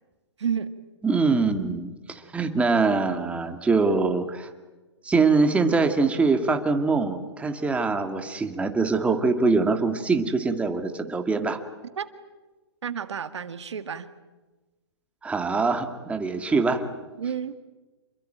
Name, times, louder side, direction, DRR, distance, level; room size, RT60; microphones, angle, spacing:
voice 1, 0.4-0.7 12.0-12.1 12.8-14.1 17.2-17.5, right 7 dB, 80° right, 11 dB, 1.8 m, -30 dB
voice 2, 1.0-4.5 5.0-11.6 15.2-16.9, right 4 dB, 10° right, 6 dB, 2.1 m, -23 dB
28.0 x 22.5 x 9.1 m, 1.2 s
hypercardioid pair, 135°, 15 cm